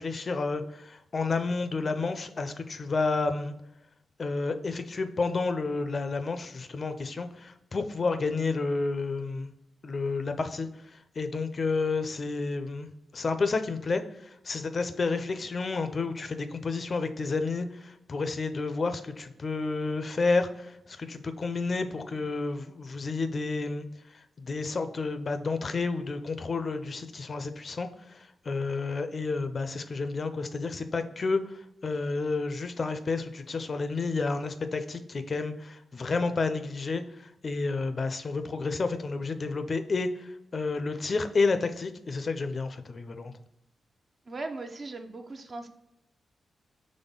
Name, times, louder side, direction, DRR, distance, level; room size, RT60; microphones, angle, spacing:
voice 1, 0.0-3.5 4.2-9.5 9.8-43.3, left 3 dB, 50° left, 9 dB, 0.4 m, -30 dB
voice 2, 44.3-45.7, right 3 dB, 45° right, 5 dB, 0.6 m, -38 dB
4.1 x 3.2 x 3.7 m, 0.86 s
cardioid pair, 60°, 0 cm